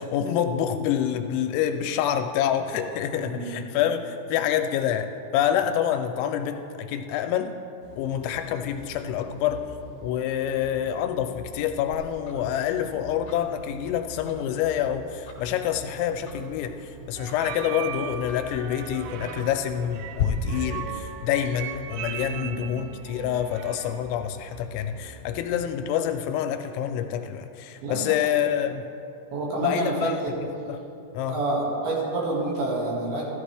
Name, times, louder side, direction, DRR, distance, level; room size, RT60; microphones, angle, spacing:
voice 1, 0.0-7.6 8.0-9.6 10.0-28.8 29.6-30.8 31.1-31.4, left 9 dB, 85° left, 7 dB, 2.8 m, -27 dB
voice 2, 3.2-3.6 22.3-22.7 27.8-28.2 29.3-30.4 31.3-33.2, right 2 dB, 60° right, -4 dB, 3.5 m, -28 dB
sound 1, 7.8-25.4, left 1 dB, 40° right, 4.4 m, -45 dB
Tick-tock, 11.9-20.2, left 11 dB, 55° left, 1.6 m, -40 dB
sound 2, 17.2-24.1, right 10 dB, 90° right, 2.4 m, -38 dB
15.0 x 13.0 x 3.3 m, 2.7 s
omnidirectional pair, 5.4 m